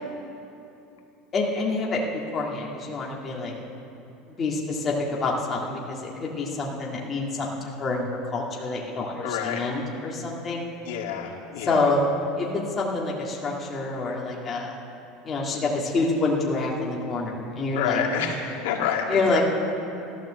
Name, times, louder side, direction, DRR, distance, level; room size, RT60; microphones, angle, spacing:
voice 1, 1.3-3.5 4.4-10.6 11.6-14.7 15.2-18.0 19.1-19.4, left 3 dB, 20° left, -3 dB, 1.8 m, -27 dB
voice 2, 9.2-9.6 10.9-11.9 17.7-19.4, left 8 dB, 80° left, 1 dB, 2.0 m, -28 dB
13.5 x 13.0 x 7.4 m, 2.8 s
cardioid pair, 175°, 0 cm